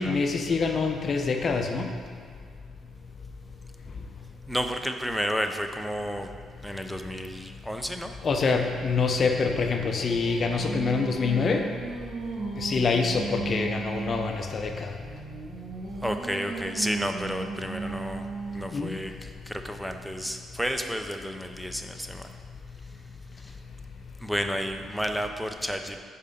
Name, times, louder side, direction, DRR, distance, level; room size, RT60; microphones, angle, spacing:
voice 1, 0.0-1.9 8.2-11.6 12.6-14.9 18.7-18.9, left 4 dB, 45° left, 4 dB, 0.5 m, -26 dB
voice 2, 4.5-6.3 6.6-8.1 16.0-18.3 18.5-22.3 23.4-23.6 24.2-26.0, equal, ahead, 6 dB, 0.5 m, -31 dB
Singing, 9.0-14.4 15.0-18.9, right 4 dB, 55° right, 1.0 m, -36 dB
5.3 x 4.3 x 5.2 m, 2.1 s
cardioid pair, 90°, 0 cm